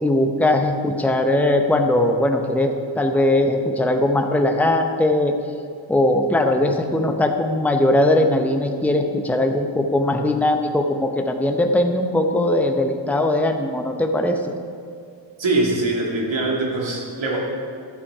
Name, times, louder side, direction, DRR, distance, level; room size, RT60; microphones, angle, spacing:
voice 1, 0.0-5.3 5.9-14.6, left 1 dB, 5° left, 4 dB, 0.8 m, -20 dB
voice 2, 15.4-17.4, right 2 dB, 70° right, -2 dB, 2.3 m, -22 dB
12.0 x 8.4 x 4.8 m, 2.4 s
wide cardioid pair, 90°, 46 cm